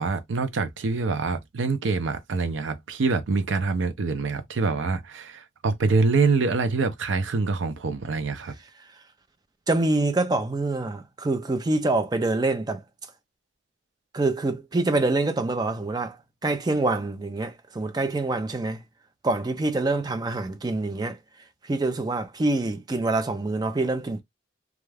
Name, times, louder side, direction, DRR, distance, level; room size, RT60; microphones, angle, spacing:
voice 1, 0.0-8.5, right 4 dB, 85° right, 0.5 m, -25 dB
voice 2, 9.7-12.8 14.1-16.2 16.4-18.8 19.2-21.2 21.6-24.2, right 2 dB, 20° right, 0.4 m, -25 dB
2.3 x 2.2 x 3.2 m
head